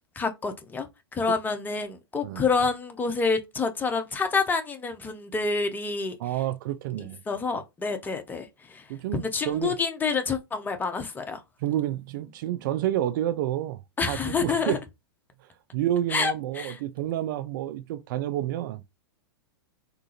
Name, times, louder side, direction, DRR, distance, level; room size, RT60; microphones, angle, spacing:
voice 1, 0.2-0.9 1.1-6.2 7.3-8.8 9.1-11.4 14.0-14.8 16.1-16.8, left 4 dB, 15° left, 0.5 m, -28 dB
voice 2, 6.2-7.2 8.9-9.7 11.6-13.8 14.1-14.8 15.7-19.0, right 12 dB, 50° right, 0.4 m, -29 dB
3.6 x 2.4 x 2.7 m
hypercardioid pair, 105°, 13 cm